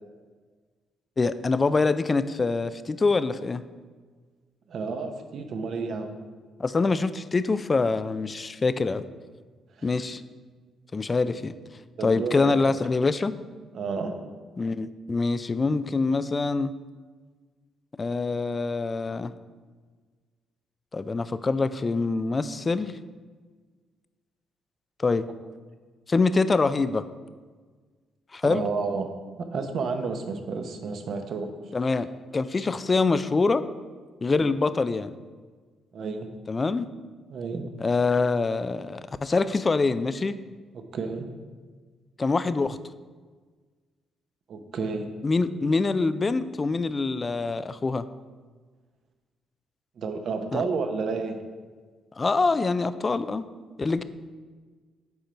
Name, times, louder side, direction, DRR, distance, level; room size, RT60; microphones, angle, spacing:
voice 1, 1.2-3.6 6.6-9.0 9.8-10.2 10.9-11.5 12.0-13.3 14.6-16.7 18.0-19.3 20.9-23.0 25.0-25.3 26.1-27.1 28.3-28.6 31.7-32.1 32.3-33.6 34.2-35.1 36.5-36.9 37.8-40.4 42.2-42.8 45.2-48.0 50.5-50.6 52.2-53.4 53.8-54.0, left 3 dB, 30° left, 13 dB, 0.4 m, -25 dB
voice 2, 4.7-6.2 9.8-9.9 12.0-12.8 13.7-14.2 28.4-29.1 29.4-31.5 34.3-34.5 35.9-36.3 37.3-37.6 40.7-41.3 44.5-45.0 50.0-51.4, right 4 dB, 60° right, 6 dB, 0.8 m, -31 dB
8.0 x 4.4 x 5.2 m, 1.5 s
cardioid pair, 90°, 0 cm